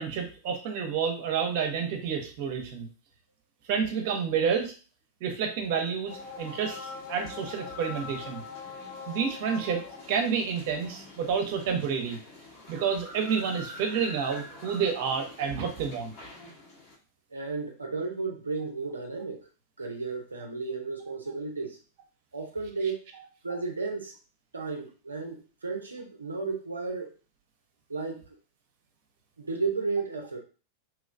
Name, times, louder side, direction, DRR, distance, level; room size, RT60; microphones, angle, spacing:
voice 1, 0.0-2.9 3.7-4.7 5.2-8.4 9.1-9.8 10.1-12.2 12.7-16.1, right 6 dB, 50° right, 4 dB, 0.7 m, -29 dB
sound 1, 6.1-16.9, left 3 dB, 45° left, 1.3 m, -44 dB
voice 2, 17.3-19.4 19.8-21.8 22.3-23.0 23.4-24.1 24.5-27.1 27.9-28.2 29.4-30.4, right 4 dB, 75° right, 2 dB, 0.4 m, -33 dB
3.0 x 3.0 x 2.5 m, 0.37 s
figure-of-eight pair, 90°, 0 cm